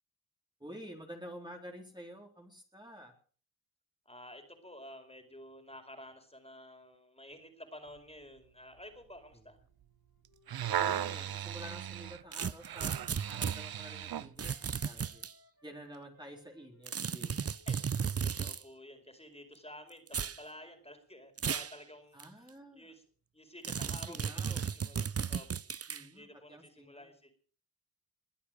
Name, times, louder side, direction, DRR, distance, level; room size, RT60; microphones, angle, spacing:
voice 1, 0.6-3.1 9.3-9.4 10.7-14.5 14.8-15.2 15.6-17.5 22.1-22.9 23.8-24.7 25.9-27.1, equal, 10° right, 1 dB, 4.0 m, -50 dB
voice 2, 4.0-9.6 17.7-17.8 18.4-23.0 23.3-25.5 26.1-27.3, left 1 dB, 15° left, 6 dB, 4.8 m, -51 dB
Wind instrument woodwind instrument, 9.7-14.1 14.4-18.9, left 3 dB, 60° left, 4.1 m, -65 dB
sound 1, 10.2-14.3 15.0-15.1, right 10 dB, 85° right, 0.6 m, -37 dB
sound 2, 12.3-13.6 14.4-15.3 16.9-18.6 20.1-20.4 21.4-21.7 22.2-22.3 23.6-26.0, right 7 dB, 40° right, 0.6 m, -35 dB
22.0 x 8.5 x 6.6 m, 0.43 s
cardioid pair, 45°, 36 cm